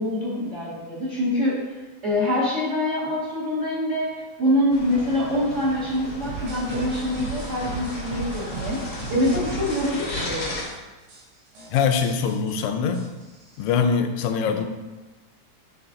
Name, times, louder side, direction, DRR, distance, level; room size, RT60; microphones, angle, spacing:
voice 1, 0.0-1.6 2.0-4.1 4.4-10.4, left 1 dB, 35° right, -8 dB, 1.3 m, -25 dB
sound 1, 4.7-10.6, left 2 dB, 50° left, 0.9 m, -35 dB
sound 2, 6.2-9.8 10.2-10.7 11.1-11.2 11.5-11.7 12.0-13.7, right 4 dB, 80° right, 3.6 m, -36 dB
voice 2, 11.7-13.1 13.6-14.7, left 6 dB, 85° left, 6 dB, 2.0 m, -23 dB
8.8 x 3.4 x 3.8 m, 1.2 s
omnidirectional pair, 3.3 m